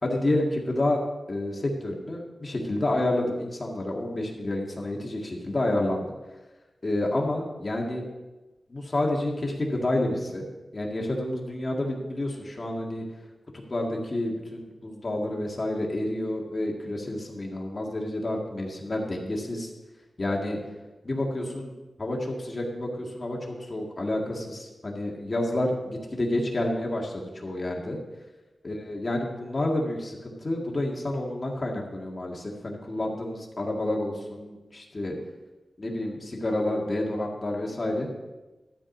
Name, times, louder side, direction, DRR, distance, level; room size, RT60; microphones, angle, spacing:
voice 1, 0.0-1.0 1.3-6.1 6.8-8.0 8.7-10.5 10.7-13.0 13.5-19.7 20.2-20.6 21.0-21.7 22.0-28.0 28.6-35.2 35.8-38.1, left 1 dB, 35° left, -1 dB, 2.0 m, -29 dB
12.5 x 5.0 x 7.0 m, 1.1 s
wide cardioid pair, 105°, 0 cm